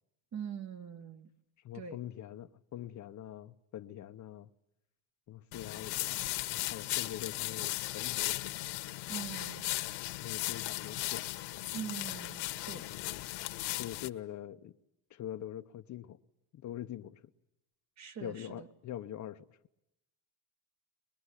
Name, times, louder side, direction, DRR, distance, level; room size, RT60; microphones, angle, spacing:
voice 1, 0.3-1.3 1.7-2.0 9.1-9.7 11.7-12.8 18.0-18.7, right 7 dB, 35° right, 1.6 m, -43 dB
voice 2, 1.6-4.5 5.3-8.7 10.2-11.3 13.8-14.7 15.1-16.2 16.5-17.3 18.2-19.6, left 12 dB, 40° left, 0.9 m, -44 dB
sound 1, 5.5-14.1, left 19 dB, 65° left, 1.5 m, -37 dB
24.0 x 22.0 x 9.8 m
cardioid pair, 130°, 45 cm